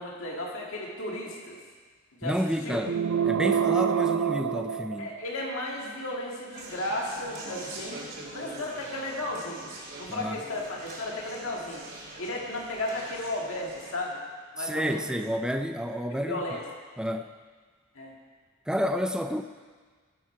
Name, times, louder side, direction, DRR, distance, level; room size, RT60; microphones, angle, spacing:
voice 1, 0.0-1.6 2.2-2.3 2.6-2.8 5.0-8.0 8.3-9.7 10.0-11.8 12.2-14.2 14.5-15.2 16.3-16.6 18.0-18.1, left 1 dB, 65° left, -2 dB, 2.0 m, -34 dB
voice 2, 2.2-2.9 3.3-5.1 10.1-10.4 14.6-16.4 17.0-17.3 18.7-19.4, equal, 5° right, 6 dB, 0.4 m, -29 dB
sound 1, 2.8-5.5, right 8 dB, 80° right, 0.6 m, -26 dB
Conversation, 6.5-13.9, right 2 dB, 45° right, 2.7 m, -43 dB
17.0 x 7.6 x 4.8 m, 1.5 s
head